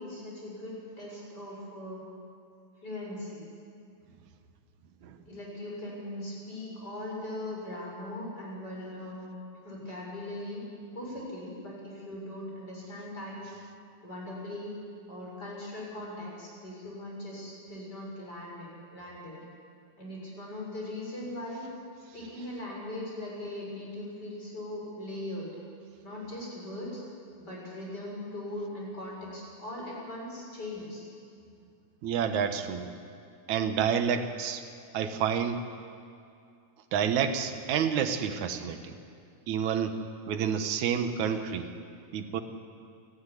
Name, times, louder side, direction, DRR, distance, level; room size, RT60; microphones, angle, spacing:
voice 1, 0.0-2.0 2.8-3.4 5.3-9.3 9.6-10.6 10.9-13.6 14.0-14.7 15.1-19.4 20.0-21.6 22.1-25.5 26.0-27.0 27.5-31.1, left 1 dB, 30° left, -3 dB, 7.1 m, -40 dB
voice 2, 32.0-32.9 33.5-34.6 34.9-35.6 36.9-39.0 39.5-40.0 40.3-41.7 42.1-42.4, right 7 dB, 70° right, 7 dB, 2.6 m, -29 dB
29.0 x 14.5 x 9.9 m, 2.5 s
omnidirectional pair, 3.6 m